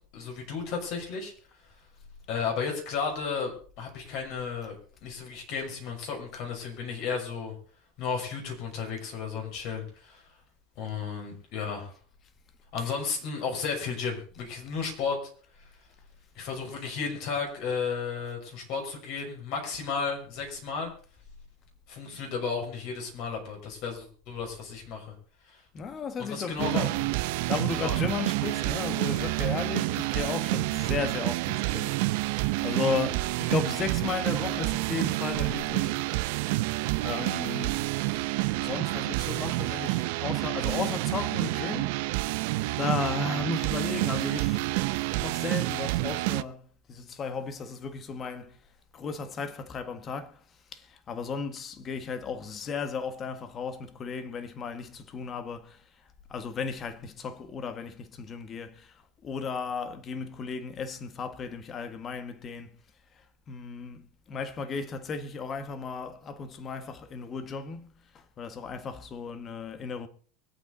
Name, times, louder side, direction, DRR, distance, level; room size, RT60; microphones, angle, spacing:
voice 1, 0.0-1.3 2.3-7.5 8.0-10.2 10.8-11.9 12.7-15.3 16.3-20.9 21.9-25.1 25.5-25.6 26.2-26.9 27.8-28.1, left 5 dB, 60° left, 6.3 m, -33 dB
voice 2, 25.7-26.9 27.5-36.4 36.8-37.9 38.1-38.2 38.6-42.0 42.3-48.6 48.9-62.8 63.1-70.1, left 5 dB, 30° left, 1.6 m, -35 dB
sound 1, 26.6-46.4, right 20 dB, 70° right, 0.6 m, -29 dB
24.0 x 8.6 x 4.1 m
supercardioid pair, 120°, 0 cm